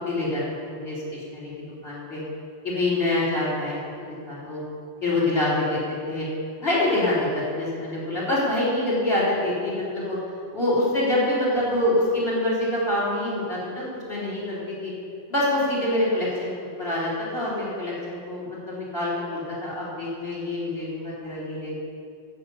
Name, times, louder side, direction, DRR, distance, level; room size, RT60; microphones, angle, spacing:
voice 1, 0.1-1.5 1.8-2.2 2.6-4.6 5.0-5.6 6.0-6.3 6.6-10.2 10.5-14.9 15.3-16.5 16.8-21.8, left 1 dB, 65° left, -7 dB, 3.6 m, -26 dB
12.5 x 5.5 x 8.4 m, 2.4 s
omnidirectional pair, 1.2 m